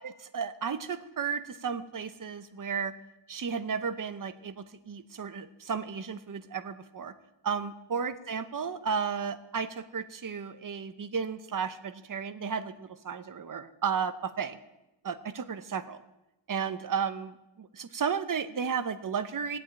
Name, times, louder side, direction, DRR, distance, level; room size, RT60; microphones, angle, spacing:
voice 1, 0.0-2.9 3.3-7.1 7.4-14.6 15.0-16.0 16.5-17.3 17.6-19.6, right 6 dB, 40° right, 10 dB, 1.0 m, -33 dB
17.5 x 8.2 x 9.0 m, 0.97 s
wide cardioid pair, 170°, 48 cm